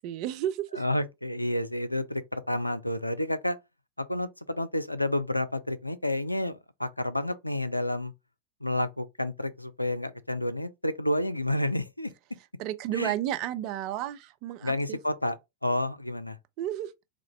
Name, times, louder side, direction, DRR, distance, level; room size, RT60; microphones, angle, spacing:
voice 1, 0.0-0.8 12.6-15.0 16.6-16.9, right 12 dB, 40° right, 0.5 m, -32 dB
voice 2, 0.7-3.6 4.0-8.1 8.6-12.1 12.9-13.1 14.6-15.4 15.6-16.4, left 1 dB, 85° left, 0.4 m, -30 dB
3.6 x 2.1 x 4.3 m
figure-of-eight pair, 90°, 0 cm